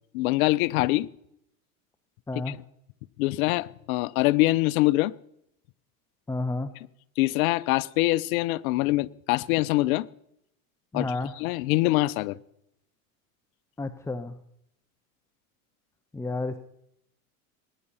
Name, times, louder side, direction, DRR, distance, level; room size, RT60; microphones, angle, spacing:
voice 1, 0.1-1.1 2.5-2.6 3.2-5.1 7.2-10.1 10.9-12.4, left 19 dB, 70° left, 0.7 m, -24 dB
voice 2, 6.3-6.7 10.9-11.3 13.8-14.4 16.1-16.6, left 2 dB, 5° left, 0.8 m, -31 dB
19.0 x 10.0 x 5.6 m
hypercardioid pair, 100°, 44 cm